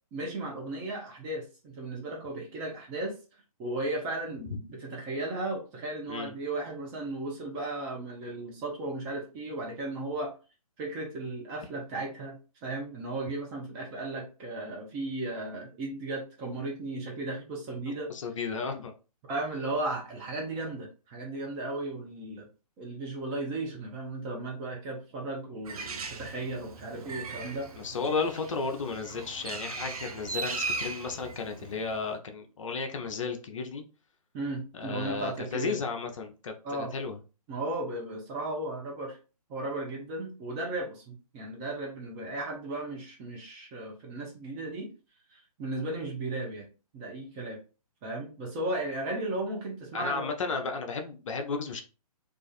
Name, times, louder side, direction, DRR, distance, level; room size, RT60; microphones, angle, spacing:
voice 1, 0.1-3.2 3.6-10.3 10.8-18.1 19.3-22.5 22.8-27.7 34.3-35.8 36.6-36.9 37.5-39.2 39.5-44.9 45.3-47.6 48.0-50.3, right 2 dB, 15° right, -1 dB, 0.5 m, -35 dB
voice 2, 18.1-18.9 27.8-33.8 34.7-37.2 49.9-51.8, left 4 dB, 55° left, 5 dB, 0.5 m, -33 dB
Bird, 25.6-32.1, right 4 dB, 65° right, 0.5 m, -38 dB
2.4 x 2.4 x 2.3 m, 0.34 s
figure-of-eight pair, 135°, 20 cm